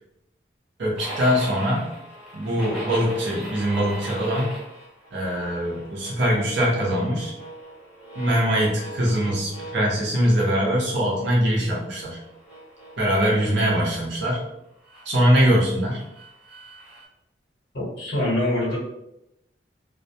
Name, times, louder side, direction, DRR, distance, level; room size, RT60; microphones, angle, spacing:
voice 1, 0.8-1.9 2.3-4.5 5.1-7.3 8.1-12.2 13.0-14.5 15.0-16.0, equal, 70° right, -4 dB, 0.7 m, -22 dB
sound 1, 1.0-10.7 11.1-13.6 14.8-17.0, right 1 dB, 5° right, 0.6 m, -40 dB
voice 2, 17.7-18.8, left 1 dB, 55° left, -6 dB, 0.8 m, -24 dB
2.2 x 2.1 x 2.7 m, 0.85 s
head